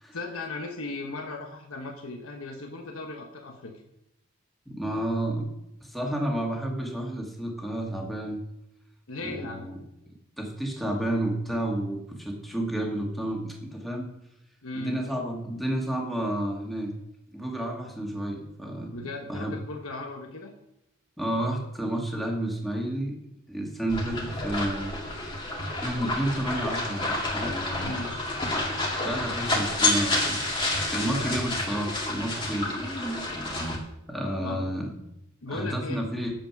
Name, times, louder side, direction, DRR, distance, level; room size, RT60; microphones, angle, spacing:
voice 1, 0.1-3.7 9.1-9.7 14.6-15.1 18.9-20.5 27.7-28.2 31.1-31.3 34.4-34.7 35.4-36.0, left 3 dB, 85° left, 3 dB, 1.1 m, -37 dB
voice 2, 4.7-5.5 5.8-8.4 9.2-9.8 10.4-14.1 14.7-16.9 17.3-19.0 19.3-19.5 21.2-23.1 23.5-24.9 25.8-28.0 29.0-30.4 30.9-32.8 34.1-34.9 35.5-36.3, right 1 dB, ahead, -1 dB, 1.8 m, -30 dB
sound 1, 23.9-33.8, left 2 dB, 25° left, 2.0 m, -29 dB
9.0 x 7.5 x 5.9 m, 0.85 s
head